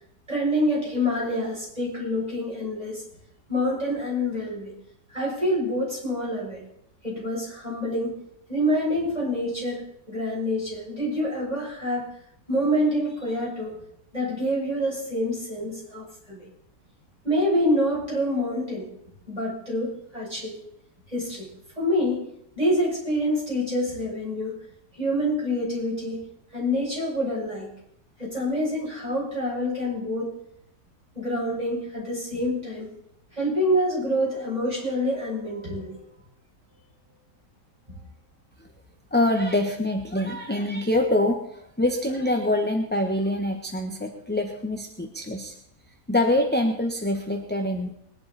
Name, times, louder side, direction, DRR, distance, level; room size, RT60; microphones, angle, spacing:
voice 1, 0.3-3.0 3.5-4.7 5.1-6.6 7.0-8.2 8.5-9.8 10.1-12.1 12.5-13.8 14.1-16.5 17.2-18.9 19.3-20.6 21.1-21.5 21.8-22.2 22.6-24.6 24.9-26.2 26.5-27.7 28.2-30.3 31.1-32.9 33.3-36.0 37.9-38.0, equal, 20° right, -5 dB, 7.3 m, -26 dB
voice 2, 39.1-45.5 46.1-47.9, left 1 dB, 5° left, 3 dB, 1.0 m, -25 dB
21.0 x 11.0 x 4.2 m, 0.74 s
omnidirectional pair, 1.8 m